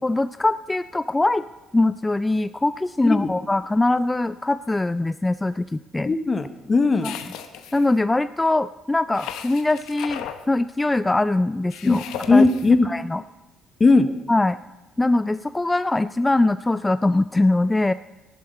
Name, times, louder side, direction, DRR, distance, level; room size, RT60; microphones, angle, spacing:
voice 1, 0.0-1.5 1.7-6.1 7.0-7.1 7.7-12.0 12.3-12.5 12.8-13.2 14.3-14.6 15.0-17.9, left 2 dB, 15° left, 14 dB, 0.3 m, -22 dB
voice 2, 6.0-7.1 11.9-12.0 12.3-12.9 13.8-14.1, left 3 dB, 35° left, 11 dB, 0.7 m, -18 dB
sound 1, 7.0-8.0 9.1-10.4 11.7-12.7, left 9 dB, 70° left, 0.9 m, -36 dB
14.0 x 11.5 x 4.2 m, 1.1 s
hypercardioid pair, 55°, 0 cm